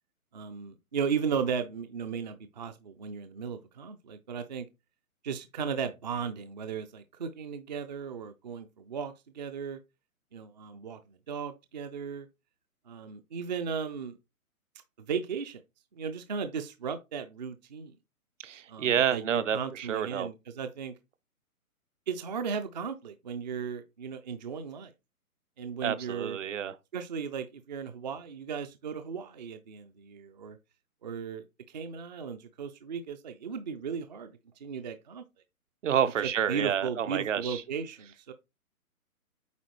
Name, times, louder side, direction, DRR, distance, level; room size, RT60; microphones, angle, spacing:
voice 1, 0.3-4.7 5.2-9.8 10.3-12.3 12.9-14.2 15.0-15.6 15.9-18.0 18.7-20.9 22.1-24.9 25.6-26.4 26.9-30.6 31.0-34.3 34.6-35.2 36.5-38.3, right 6 dB, 30° right, 0.5 m, -36 dB
voice 2, 18.4-20.3 25.8-26.8 35.8-37.6, right 9 dB, 55° right, 0.8 m, -29 dB
8.3 x 4.4 x 3.0 m
hypercardioid pair, 145°, 44 cm